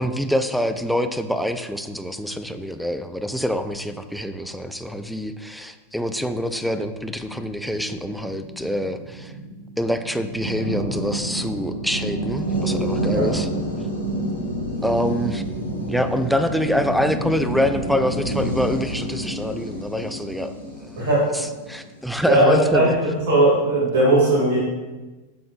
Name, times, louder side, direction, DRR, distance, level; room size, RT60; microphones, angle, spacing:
voice 1, 0.0-9.3 9.8-13.5 14.8-15.4 15.9-20.5 20.8-22.9, equal, ahead, 8 dB, 0.4 m, -25 dB
sound 1, 7.0-22.5, right 1 dB, 90° right, 1.5 m, -29 dB
voice 2, 21.0-21.3 22.2-22.9 23.3-24.6, right 1 dB, 55° right, -5 dB, 2.3 m, -18 dB
8.3 x 5.9 x 2.5 m, 1.2 s
figure-of-eight pair, 90°, 0 cm